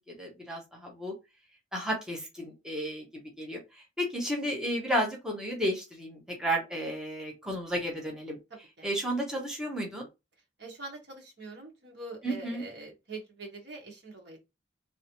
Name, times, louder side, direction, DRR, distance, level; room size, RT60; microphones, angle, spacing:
voice 1, 0.1-1.1 1.7-8.4 8.8-10.1 12.2-12.6, equal, 5° right, 0.9 m, -33 dB
voice 2, 10.6-14.4, right 2 dB, 65° right, 1.4 m, -44 dB
3.2 x 2.7 x 2.9 m
head